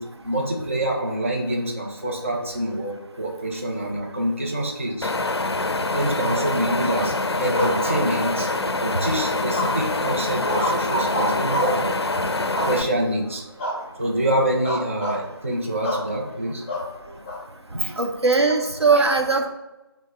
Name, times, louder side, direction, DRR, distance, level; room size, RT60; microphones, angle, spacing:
voice 1, 0.0-5.1 5.9-7.1 7.4-8.5 8.8-12.0 12.7-13.5 14.0-16.6 17.7-17.9 18.9-19.1, right 1 dB, 30° right, -1 dB, 0.5 m, -26 dB
Wind, 5.0-12.8, left 2 dB, 75° left, 0.4 m, -25 dB
sound 1, 7.5-8.6 9.5-10.0 10.4-11.9 12.5-13.1 13.6-13.8 14.1-14.3 14.6-15.2 15.8-16.1 16.7-17.4, equal, 25° left, 0.8 m, -26 dB
voice 2, 18.0-19.5, right 4 dB, 85° right, 3 dB, 0.7 m, -20 dB
6.1 x 2.0 x 3.6 m, 1.0 s
figure-of-eight pair, 165°, 14 cm